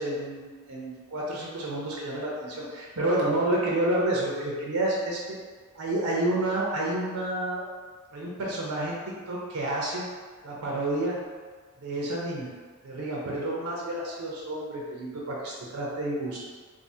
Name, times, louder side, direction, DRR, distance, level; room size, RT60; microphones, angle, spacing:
voice 1, 0.0-5.4 5.7-7.6 8.1-9.0 9.3-10.0 10.4-11.2 11.8-12.5 12.8-16.4, right 1 dB, 80° right, -4 dB, 0.6 m, -29 dB
3.7 x 2.0 x 2.7 m, 1.5 s
head